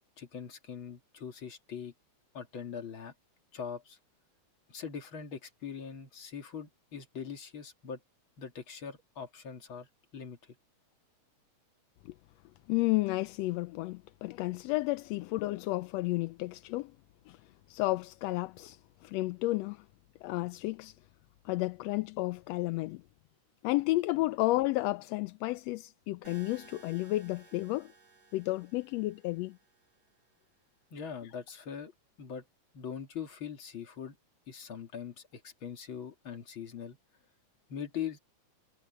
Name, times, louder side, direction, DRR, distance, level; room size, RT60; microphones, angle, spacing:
voice 1, 0.2-1.9 2.3-3.1 3.5-4.0 4.7-8.0 8.4-10.5 30.9-31.9 32.2-32.4 32.7-34.2 34.5-37.0 37.7-38.2, left 7 dB, 45° left, 2.9 m, -42 dB
voice 2, 12.7-16.9 17.3-17.4 17.7-19.8 20.2-21.0 21.4-23.0 23.6-27.9 28.3-29.6, left 19 dB, 80° left, 1.6 m, -32 dB
sound 1, 26.2-30.3, right 4 dB, 65° right, 7.7 m, -58 dB
omnidirectional pair, 3.3 m